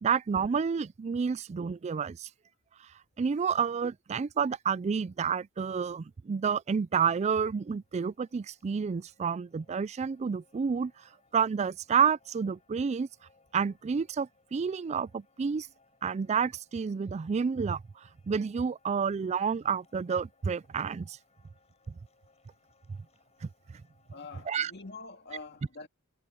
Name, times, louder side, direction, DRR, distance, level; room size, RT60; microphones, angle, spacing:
voice 1, 0.0-2.3 3.2-10.9 11.3-13.1 13.5-15.7 16.0-17.8 18.3-21.2 24.5-24.7, right 6 dB, 30° right, 0.3 m, -29 dB
sound 1, 6.3-25.1, left 3 dB, 35° left, 5.2 m, -68 dB
voice 2, 24.1-25.9, left 3 dB, 55° left, 2.2 m, -45 dB
head